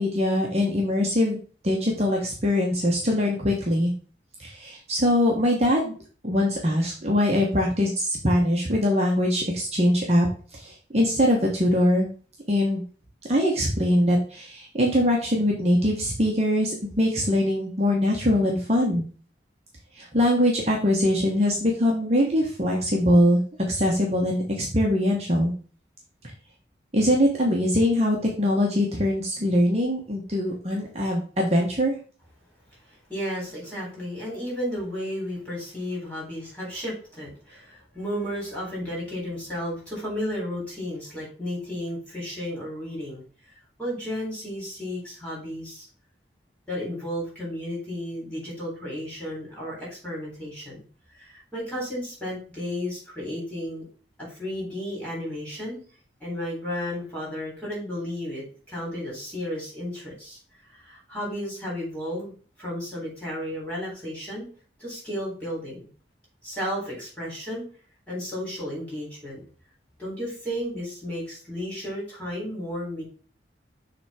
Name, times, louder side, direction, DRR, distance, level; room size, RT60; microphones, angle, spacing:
voice 1, 0.0-1.4 1.6-3.9 4.4-5.9 6.2-10.3 10.5-12.1 12.5-12.8 13.3-19.0 19.9-23.4 23.7-25.5 26.9-31.9, left 1 dB, 35° right, -2 dB, 1.2 m, -22 dB
voice 2, 33.1-43.2 43.8-45.8 46.7-50.8 51.2-53.8 54.2-55.8 56.2-60.4 60.7-62.3 62.6-64.5 64.8-65.9 66.4-67.6 68.1-69.4 70.0-73.0, equal, 5° left, -5 dB, 3.6 m, -33 dB
7.1 x 3.5 x 4.9 m, 0.39 s
head